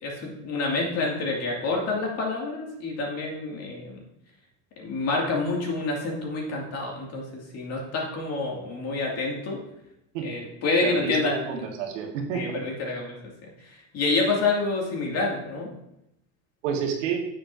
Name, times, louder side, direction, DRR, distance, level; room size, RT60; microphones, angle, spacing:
voice 1, 0.0-4.0 4.8-9.6 10.2-11.3 12.3-13.2 13.6-15.7, left 3 dB, 45° left, -1 dB, 2.4 m, -28 dB
voice 2, 10.8-12.6 16.6-17.2, right 6 dB, 85° right, 1 dB, 1.7 m, -29 dB
9.1 x 7.5 x 2.7 m, 0.82 s
supercardioid pair, 125°, 36 cm